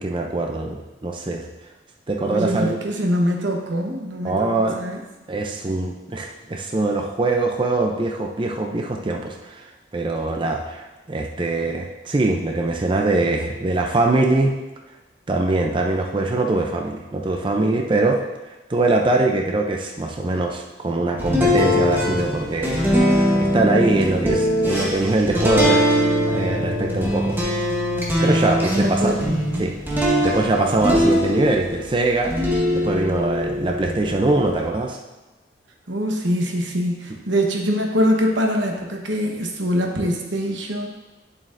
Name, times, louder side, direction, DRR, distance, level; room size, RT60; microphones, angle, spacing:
voice 1, 0.0-1.4 2.1-2.8 4.2-4.8 5.3-9.6 9.9-14.5 15.3-18.2 18.7-23.1 23.4-25.8 26.3-27.4 28.2-29.2 29.6-29.7 30.2-32.3 32.7-35.0 37.1-37.2, right 2 dB, 25° right, 2 dB, 0.5 m, -22 dB
voice 2, 2.3-5.0 28.7-29.7 35.9-40.9, equal, 90° right, 1 dB, 1.1 m, -23 dB
sound 1, 21.2-31.8 32.2-34.6, equal, 10° right, 1.3 m, -21 dB
8.6 x 7.4 x 2.6 m, 1.1 s
head